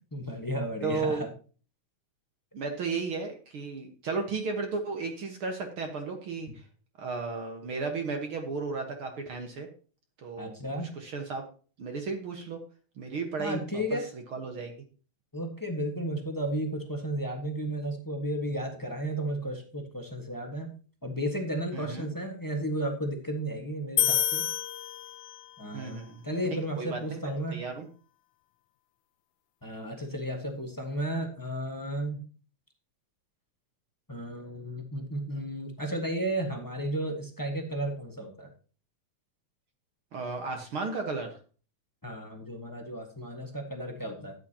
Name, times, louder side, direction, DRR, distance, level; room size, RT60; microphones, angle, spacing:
voice 1, 0.1-1.3 10.4-10.9 13.4-14.1 15.3-20.7 21.0-24.5 25.6-27.5 29.6-32.2 34.1-38.5 42.0-44.3, right 1 dB, 30° left, 3 dB, 0.4 m, -33 dB
voice 2, 0.8-1.2 2.5-6.5 7.0-9.7 10.2-10.5 11.0-11.4 11.8-12.6 13.0-13.8 14.3-14.8 21.7-22.1 25.7-27.2 27.5-27.9 40.1-41.3, right 4 dB, 50° right, 4 dB, 2.0 m, -34 dB
sound 1, 24.0-25.6, left 12 dB, 90° left, 1.2 m, -28 dB
13.0 x 9.4 x 2.9 m, 0.38 s
omnidirectional pair, 3.3 m